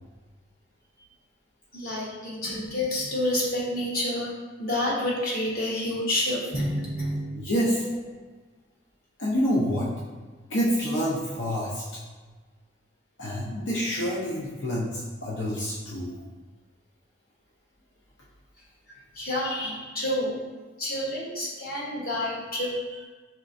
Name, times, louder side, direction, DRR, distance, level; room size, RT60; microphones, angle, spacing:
voice 1, 1.7-4.3 4.6-7.3 19.2-20.5 20.8-23.0, left 1 dB, 55° left, -5 dB, 1.0 m, -29 dB
voice 2, 7.3-7.9 9.2-9.9 10.5-11.8 13.2-16.1, equal, 80° left, -6 dB, 0.7 m, -27 dB
4.4 x 3.2 x 2.6 m, 1.4 s
head